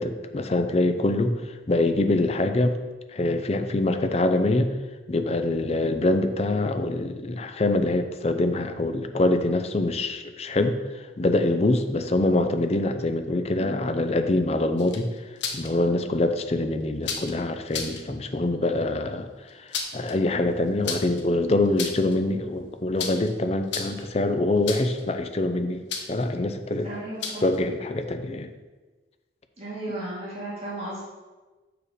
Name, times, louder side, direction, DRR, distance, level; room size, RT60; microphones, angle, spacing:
voice 1, 0.0-2.8 3.1-4.7 5.1-25.8 26.1-26.9 27.4-28.5, left 2 dB, 35° left, 8 dB, 0.5 m, -25 dB
sound 1, 14.8-15.7 17.0-17.3 17.7-18.0 19.5-20.1 20.8-21.2 21.6-22.2 23.0-23.3 23.6-24.1 24.7-25.0 25.9-26.2 27.2-27.6, left 5 dB, 80° left, 0.9 m, -32 dB
voice 2, 26.8-27.4 29.6-31.0, right 1 dB, 35° right, -7 dB, 2.2 m, -34 dB
6.4 x 4.9 x 4.9 m, 1.2 s
head